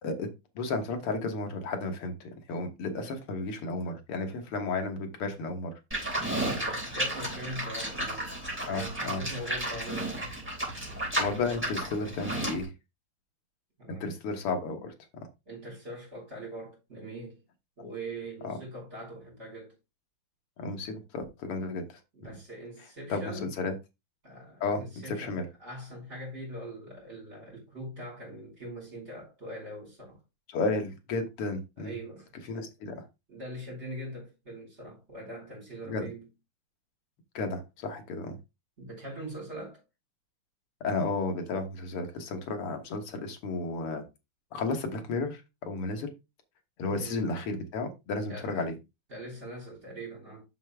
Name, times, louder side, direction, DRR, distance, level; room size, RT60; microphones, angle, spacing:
voice 1, 0.6-5.7 8.7-9.2 10.9-12.7 13.9-14.9 18.4-18.6 20.6-22.0 23.1-23.7 24.6-25.5 30.5-31.9 32.4-33.1 35.9-36.0 37.3-38.4 40.8-44.0 44.5-46.1 46.8-48.7, left 3 dB, 85° left, 2.4 m, -33 dB
Livestock farm animals working animals, 5.9-12.6, right 1 dB, 5° right, 5.6 m, -33 dB
voice 2, 6.5-8.3 8.6-10.2 13.8-14.2 15.5-17.4 17.8-19.8 22.1-23.6 24.2-30.2 31.8-32.6 33.3-36.3 38.8-39.8 46.9-47.3 48.2-48.6 49.1-50.4, right 1 dB, 30° right, 5.6 m, -42 dB
7.4 x 6.8 x 3.4 m
omnidirectional pair, 2.4 m